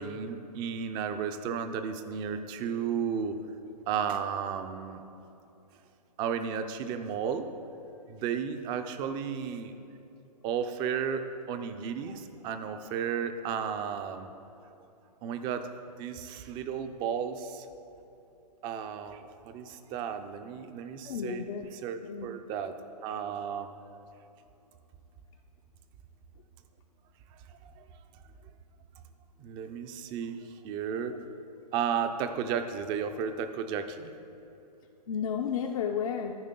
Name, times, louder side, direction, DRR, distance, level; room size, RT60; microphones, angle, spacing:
voice 1, 0.0-3.4 3.9-5.0 6.2-7.5 8.1-9.7 10.4-14.3 15.2-15.7 16.0-17.7 18.6-21.5 21.8-22.8 23.0-23.7 27.5-27.9 29.4-31.2 31.7-34.1, right 7 dB, 20° right, 8 dB, 0.4 m, -33 dB
voice 2, 21.0-21.7 22.0-22.3 35.1-36.3, left 7 dB, 55° left, 2 dB, 0.6 m, -32 dB
13.5 x 5.1 x 3.7 m, 2.8 s
hypercardioid pair, 135°, 21 cm